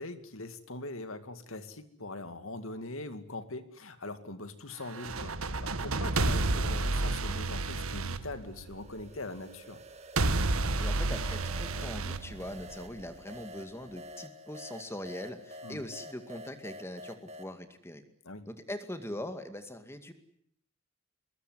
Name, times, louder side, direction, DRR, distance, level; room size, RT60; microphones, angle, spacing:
voice 1, 0.0-9.8 15.6-15.8 18.2-18.5, left 2 dB, 70° left, 10 dB, 2.4 m, -42 dB
sound 1, 4.9-9.0 10.2-13.0, right 2 dB, 85° right, 1.5 m, -31 dB
sound 2, 8.4-17.5, equal, 30° right, 2.0 m, -49 dB
voice 2, 10.8-18.0 18.5-20.1, left 1 dB, 10° left, 8 dB, 2.2 m, -41 dB
23.5 x 21.5 x 9.6 m, 0.70 s
head